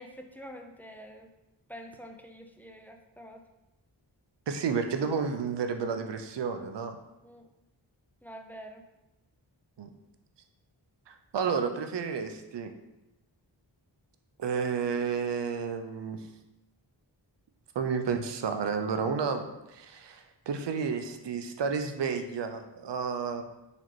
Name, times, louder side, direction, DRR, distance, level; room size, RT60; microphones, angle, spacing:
voice 1, 0.0-1.3 1.7-3.4 7.2-7.5 8.2-8.9, equal, 5° left, 3 dB, 0.4 m, -46 dB
voice 2, 4.5-7.0 9.8-9.9 11.1-12.7 14.4-16.3 17.8-23.4, right 5 dB, 65° right, 7 dB, 0.5 m, -31 dB
4.1 x 2.9 x 3.1 m, 0.95 s
wide cardioid pair, 45°, 46 cm